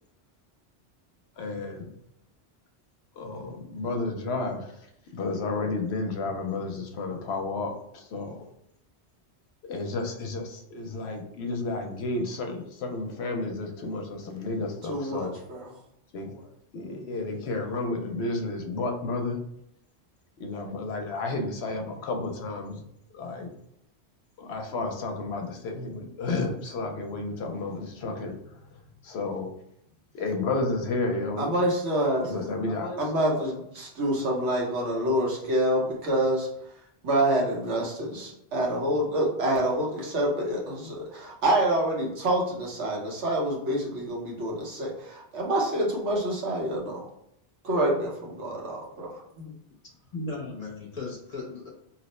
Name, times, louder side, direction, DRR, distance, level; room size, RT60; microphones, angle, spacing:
voice 1, 1.4-1.9 3.2-4.7 5.1-8.5 9.7-15.4 16.1-16.4 16.7-19.4 20.4-22.8 23.1-23.5 24.4-28.4 29.0-29.5 30.1-31.5 32.2-33.5, left 3 dB, 70° left, 4 dB, 0.8 m, -32 dB
voice 2, 14.9-15.7 31.4-32.5 33.0-36.5 37.0-47.0 47.6-49.4, right 1 dB, 85° right, -2 dB, 1.2 m, -27 dB
voice 3, 50.1-51.7, left 2 dB, 40° left, -2 dB, 0.8 m, -36 dB
2.8 x 2.0 x 4.0 m, 0.75 s
omnidirectional pair, 1.2 m